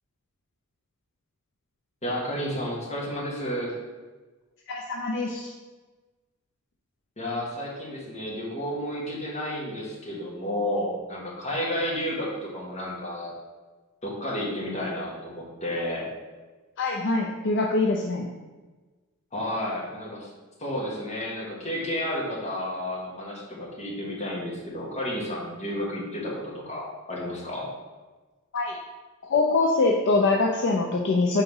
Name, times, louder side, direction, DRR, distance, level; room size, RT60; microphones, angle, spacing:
voice 1, 2.0-3.7 7.2-13.3 14.0-16.1 19.3-20.3 20.6-27.7, left 1 dB, 30° left, -5 dB, 1.6 m, -31 dB
voice 2, 4.7-5.5 16.8-18.3 28.5-28.8 29.3-31.4, left 3 dB, 55° left, 0 dB, 0.5 m, -24 dB
4.8 x 4.0 x 5.4 m, 1.3 s
head